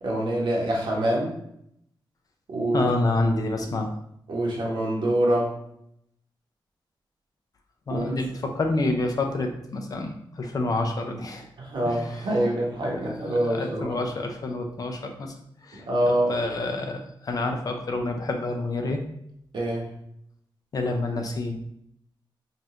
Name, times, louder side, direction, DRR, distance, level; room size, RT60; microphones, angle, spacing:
voice 1, 0.0-1.3 2.5-2.9 4.3-5.5 7.9-8.2 11.6-13.9 15.7-16.3 19.5-19.9, right 1 dB, 70° right, -2 dB, 1.2 m, -25 dB
voice 2, 2.7-4.0 7.9-11.5 11.9-12.3 13.2-15.3 15.6-19.0 20.7-21.6, left 2 dB, 50° left, 4 dB, 0.6 m, -28 dB
5.2 x 2.5 x 2.9 m, 0.74 s
wide cardioid pair, 145°, 8 cm